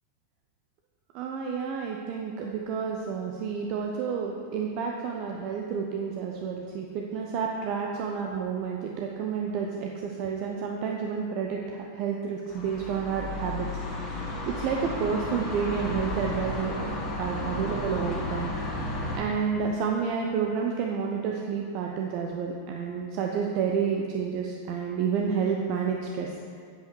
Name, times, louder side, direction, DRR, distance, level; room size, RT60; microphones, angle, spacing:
voice 1, 1.1-14.1 14.5-16.7 17.2-18.8 19.1-26.3, right 6 dB, 45° right, 1 dB, 0.7 m, -30 dB
sound 1, 12.5-19.2, left 1 dB, 30° left, 1.9 m, -33 dB
8.1 x 8.0 x 4.7 m, 2.1 s
figure-of-eight pair, 90°, 0 cm